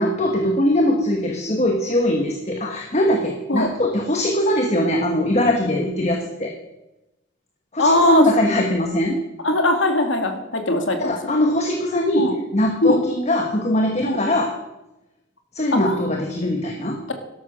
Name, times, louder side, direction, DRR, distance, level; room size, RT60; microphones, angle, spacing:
voice 1, 0.0-6.5 7.7-9.2 11.0-14.5 15.5-17.0, left 1 dB, 35° left, 2 dB, 1.3 m, -21 dB
voice 2, 7.8-8.2 9.4-11.2 12.2-12.3 12.8-13.0 14.0-14.2 15.7-16.0, left 1 dB, 75° left, 6 dB, 2.1 m, -19 dB
12.5 x 11.5 x 6.2 m, 0.97 s
head